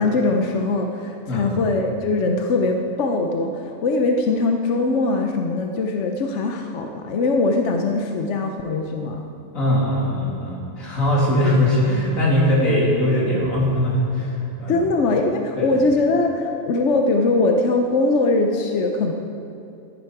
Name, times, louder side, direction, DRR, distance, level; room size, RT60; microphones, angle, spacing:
voice 1, 0.0-9.3 11.3-11.5 14.7-19.1, left 3 dB, 65° left, 3 dB, 1.0 m, -21 dB
voice 2, 9.5-14.9 15.6-15.8, left 1 dB, 85° left, -5 dB, 3.0 m, -21 dB
14.5 x 10.5 x 4.8 m, 2.7 s
omnidirectional pair, 1.4 m